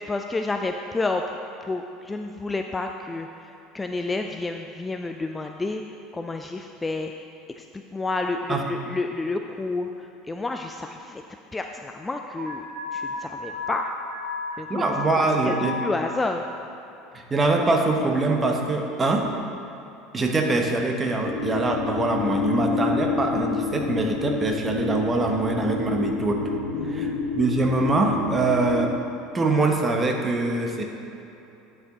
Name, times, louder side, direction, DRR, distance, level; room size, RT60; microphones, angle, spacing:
voice 1, 0.1-1.2 1.6-7.1 7.5-11.2 11.5-12.7 12.9-13.9 14.6-15.5 15.8-16.4 26.7-27.2, left 3 dB, 15° left, 4 dB, 0.3 m, -30 dB
Alarm, 12.4-15.9, left 3 dB, 50° right, 1.7 m, -33 dB
voice 2, 14.7-15.8 17.1-19.4 20.1-26.5 26.8-29.0 29.3-30.8, right 2 dB, 20° right, 2 dB, 1.0 m, -23 dB
sound 1, 21.2-28.8, left 4 dB, 65° left, 0.7 m, -28 dB
10.5 x 4.9 x 4.0 m, 2.8 s
figure-of-eight pair, 70°, 0 cm